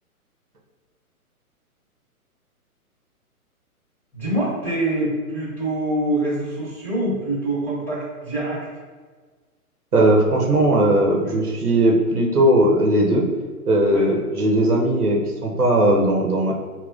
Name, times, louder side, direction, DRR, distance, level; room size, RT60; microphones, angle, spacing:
voice 1, 4.1-8.7 11.2-11.4 13.9-14.1, right 1 dB, 5° left, -8 dB, 0.9 m, -25 dB
voice 2, 9.9-13.3 13.7-16.5, right 1 dB, 80° right, 0 dB, 0.9 m, -18 dB
5.1 x 2.9 x 2.4 m, 1.5 s
figure-of-eight pair, 120°, 45 cm